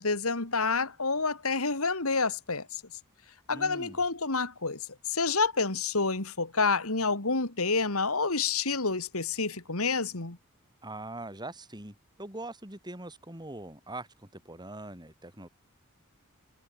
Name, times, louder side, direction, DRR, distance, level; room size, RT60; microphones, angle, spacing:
voice 1, 0.0-2.8 3.5-10.4, left 4 dB, 70° left, 2.8 m, -28 dB
voice 2, 3.5-4.0 10.8-15.5, right 2 dB, 20° right, 5.7 m, -42 dB
head